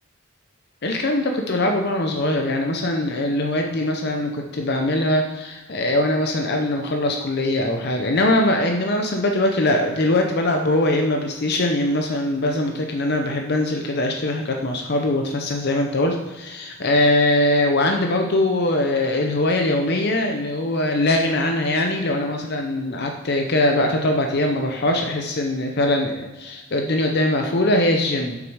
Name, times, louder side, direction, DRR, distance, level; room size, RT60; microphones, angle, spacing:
voice 1, 0.8-28.4, left 1 dB, 50° left, 3 dB, 0.7 m, -22 dB
7.6 x 6.1 x 4.8 m, 1.2 s
head